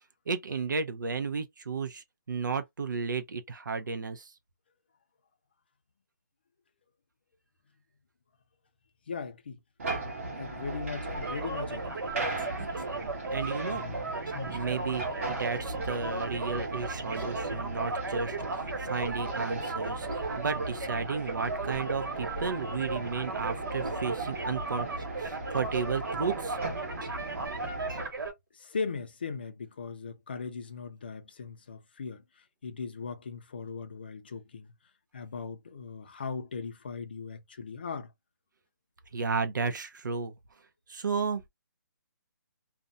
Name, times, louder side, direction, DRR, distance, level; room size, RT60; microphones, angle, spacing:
voice 1, 0.3-4.3 13.3-13.9 14.5-20.1 20.4-24.9 25.2-26.6 39.1-40.3 40.9-41.4, right 5 dB, 70° right, 0.7 m, -33 dB
voice 2, 9.1-9.6 10.4-12.0 13.7-14.6 28.5-34.7 35.1-38.1, left 5 dB, 30° left, 0.4 m, -39 dB
sound 1, 9.8-28.1, right 2 dB, 40° right, 1.0 m, -38 dB
sound 2, 11.1-28.3, right 3 dB, 85° right, 1.2 m, -36 dB
2.5 x 2.1 x 2.5 m
hypercardioid pair, 180°, 11 cm